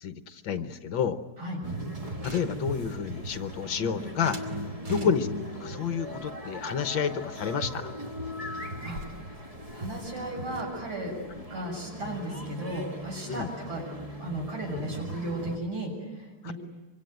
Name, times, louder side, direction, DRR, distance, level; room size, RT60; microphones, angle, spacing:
voice 1, 0.0-1.2 2.2-4.4 4.9-5.3 5.5-7.9 13.3-13.5 16.4-16.5, left 7 dB, 65° left, 10 dB, 1.7 m, -30 dB
sound 1, 1.6-15.6, equal, 20° right, 1.3 m, -38 dB
sound 2, 1.7-3.8 4.2-5.5 6.1-7.4 7.6-7.8 8.1-8.2 8.4-12.2, right 1 dB, 50° right, 3.3 m, -49 dB
voice 2, 8.8-9.4 9.7-11.1 11.5-13.8 14.2-16.5, right 1 dB, 75° right, 0 dB, 7.9 m, -35 dB
25.0 x 25.0 x 9.3 m, 1.2 s
omnidirectional pair, 2.3 m